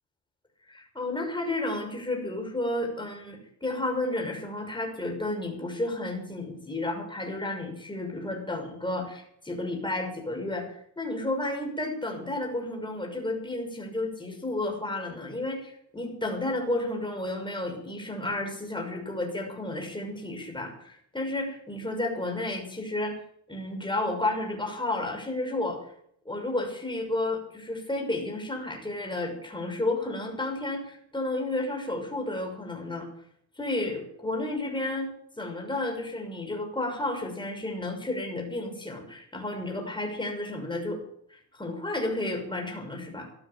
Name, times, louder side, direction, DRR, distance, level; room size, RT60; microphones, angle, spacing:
voice 1, 0.7-23.2 23.5-25.8 26.2-33.1 33.6-35.1 35.4-41.0 41.3-43.3, left 2 dB, 10° left, 2 dB, 6.1 m, -32 dB
15.0 x 11.5 x 7.2 m, 0.67 s
cardioid pair, 90°, 50 cm